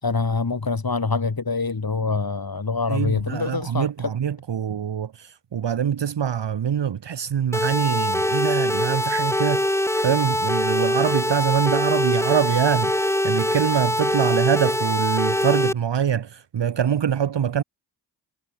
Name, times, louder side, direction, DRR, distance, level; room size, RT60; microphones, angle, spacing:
voice 1, 0.0-4.1, left 4 dB, 50° left, 4.6 m, -25 dB
voice 2, 2.9-17.6, right 8 dB, 70° right, 1.0 m, -24 dB
sound 1, 7.5-15.7, left 1 dB, 5° left, 1.4 m, -23 dB
cardioid pair, 40°, 45 cm